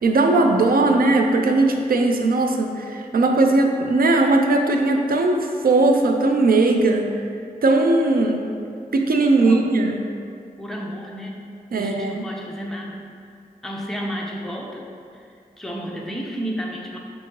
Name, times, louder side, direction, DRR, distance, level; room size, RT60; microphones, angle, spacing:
voice 1, 0.0-7.2 7.6-8.4 8.9-10.0 11.7-12.2, right 2 dB, 70° right, 3 dB, 0.4 m, -18 dB
voice 2, 9.4-9.7 10.6-13.1 13.6-14.9 15.1-15.3 15.6-17.0, equal, ahead, -2 dB, 0.6 m, -32 dB
5.7 x 2.7 x 3.0 m, 2.4 s
cardioid pair, 50°, 16 cm